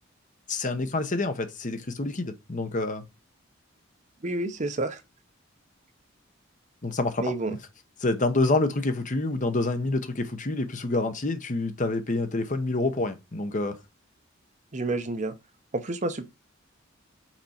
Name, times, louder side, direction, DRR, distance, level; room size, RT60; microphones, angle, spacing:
voice 1, 0.5-3.0 6.8-7.3 8.0-13.8, left 2 dB, 40° left, 1.0 m, -27 dB
voice 2, 4.2-5.0 7.2-7.6 14.7-15.3 15.7-16.3, right 2 dB, 40° right, 0.8 m, -29 dB
6.0 x 4.4 x 4.3 m
head